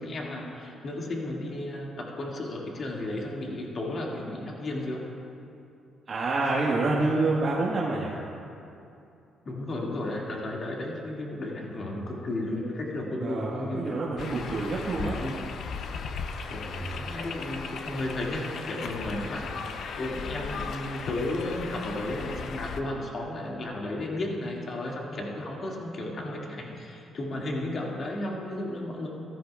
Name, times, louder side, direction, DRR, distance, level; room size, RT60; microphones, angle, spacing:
voice 1, 0.0-5.1 9.5-14.4 14.9-15.4 16.5-29.1, left 1 dB, 50° left, -2 dB, 1.9 m, -34 dB
voice 2, 6.1-8.2 13.2-15.2, right 3 dB, 45° right, -4 dB, 1.3 m, -27 dB
sound 1, 14.2-22.8, left 5 dB, 65° left, 0.5 m, -37 dB
15.5 x 13.5 x 2.3 m, 2.7 s
cardioid pair, 90°, 0 cm